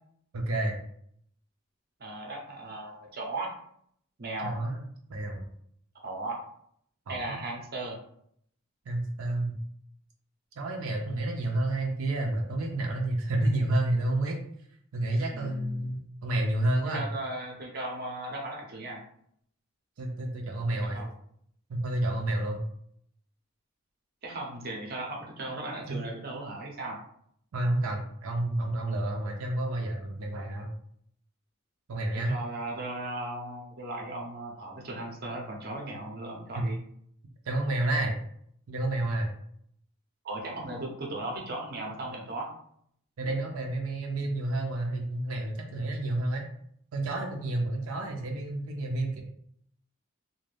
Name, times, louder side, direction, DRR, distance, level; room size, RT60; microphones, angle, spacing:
voice 1, 0.3-0.8 4.4-4.8 5.1-5.5 7.1-7.4 8.9-9.6 10.6-14.4 14.9-17.1 20.0-21.1 21.7-22.6 25.9-26.0 27.5-30.7 31.9-32.4 36.6-36.7 37.5-38.2 38.7-39.3 43.2-46.5 46.9-49.2, right 1 dB, 90° right, 1 dB, 0.5 m, -30 dB
voice 2, 2.0-3.5 4.2-4.6 6.0-6.4 7.1-8.0 15.3-15.9 16.9-19.0 20.8-21.1 24.2-27.0 32.1-36.8 40.2-42.5, right 2 dB, 50° right, 0 dB, 0.6 m, -37 dB
2.5 x 2.2 x 3.2 m, 0.68 s
head